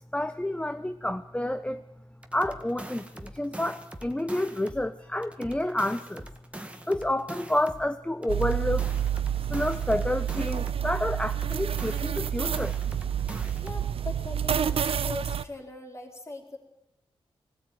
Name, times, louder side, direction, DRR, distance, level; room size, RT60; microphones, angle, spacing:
voice 1, 0.1-1.8 2.3-6.3 6.9-9.0 9.4-12.8, left 1 dB, 10° left, 10 dB, 0.8 m, -29 dB
sound 1, 2.2-4.9 5.2-7.9 8.2-10.9 11.2-13.9, right 1 dB, 10° right, 2.0 m, -43 dB
sound 2, 8.3-15.4, right 9 dB, 70° right, 0.9 m, -29 dB
voice 2, 13.6-16.6, left 2 dB, 30° left, 2 dB, 4.5 m, -40 dB
20.5 x 16.5 x 9.3 m, 0.87 s
wide cardioid pair, 90°, 10 cm